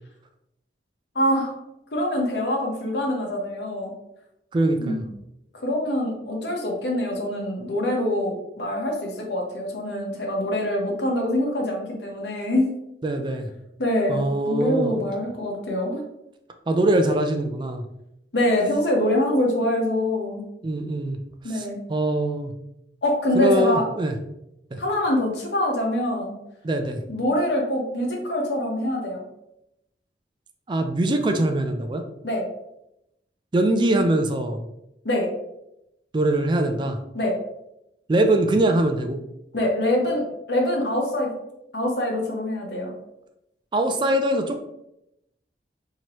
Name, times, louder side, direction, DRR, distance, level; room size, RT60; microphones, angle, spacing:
voice 1, 1.1-1.5 1.9-3.9 4.8-5.0 5.6-12.7 13.8-16.0 18.3-20.4 21.4-21.8 23.0-23.9 24.8-26.3 27.1-29.2 32.2-32.5 35.0-35.3 37.1-37.3 39.5-40.2 40.5-41.3 41.7-42.9, left 1 dB, 70° left, 0 dB, 1.0 m, -24 dB
voice 2, 4.5-5.0 13.0-13.5 14.1-15.0 16.7-17.8 20.6-21.2 21.4-22.5 23.3-24.1 24.7-24.8 26.6-27.0 30.7-32.0 33.5-34.6 36.1-37.0 38.1-39.2 43.7-44.6, right 1 dB, 25° right, 6 dB, 0.3 m, -22 dB
4.5 x 2.9 x 2.9 m, 0.84 s
head